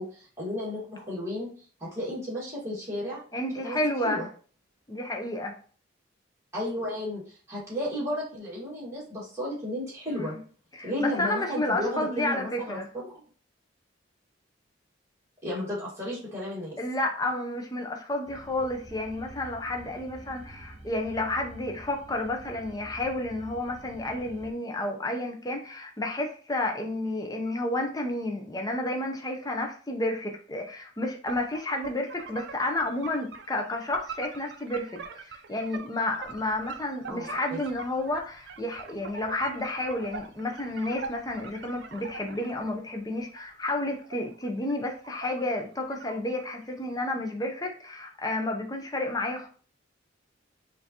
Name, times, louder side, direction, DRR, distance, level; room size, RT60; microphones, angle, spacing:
voice 1, 0.0-1.5 1.8-3.2 3.6-3.8 4.0-4.3 6.5-10.3 10.8-13.2 15.4-16.8 37.1-37.6, left 1 dB, 15° right, -7 dB, 1.7 m, -33 dB
voice 2, 3.3-4.2 4.9-5.5 10.1-10.4 10.7-12.9 16.8-49.5, left 1 dB, 20° left, 2 dB, 0.6 m, -31 dB
sound 1, 18.3-24.5, right 2 dB, 35° right, 0.8 m, -48 dB
sound 2, 31.3-42.7 43.1-45.7 45.9-46.7, right 5 dB, 55° right, 0.4 m, -43 dB
5.5 x 2.6 x 2.8 m, 0.42 s
head